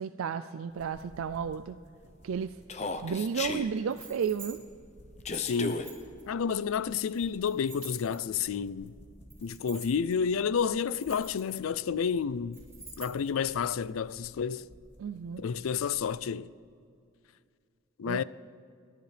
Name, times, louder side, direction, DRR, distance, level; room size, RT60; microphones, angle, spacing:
voice 1, 0.0-1.8 2.2-2.6 3.0-4.6 15.0-15.4 18.1-18.2, right 7 dB, 85° right, 0.4 m, -33 dB
sound 1, 0.7-16.1, equal, 55° left, 2.5 m, -56 dB
Human voice, 2.7-3.7 5.2-5.9, left 3 dB, 35° left, 0.7 m, -33 dB
sound 2, 3.9-4.5 5.3-6.2 6.9-8.5 9.3-10.1 10.8-11.8 12.5-13.3, right 6 dB, 15° right, 4.2 m, -49 dB
voice 2, 5.3-5.8 6.3-9.0 9.4-12.6 13.0-14.7 15.4-16.5 18.0-18.2, left 6 dB, 90° left, 0.4 m, -30 dB
29.0 x 11.5 x 3.4 m
head